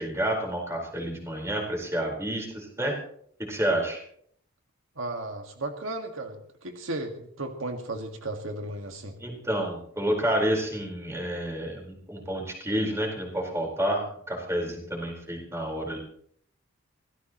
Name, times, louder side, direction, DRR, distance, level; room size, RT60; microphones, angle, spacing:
voice 1, 0.0-3.0 3.4-4.0 9.2-16.0, right 1 dB, 15° right, 1 dB, 4.5 m, -29 dB
voice 2, 5.0-9.2, right 2 dB, 75° right, 4 dB, 1.8 m, -35 dB
24.5 x 16.5 x 3.1 m, 0.64 s
head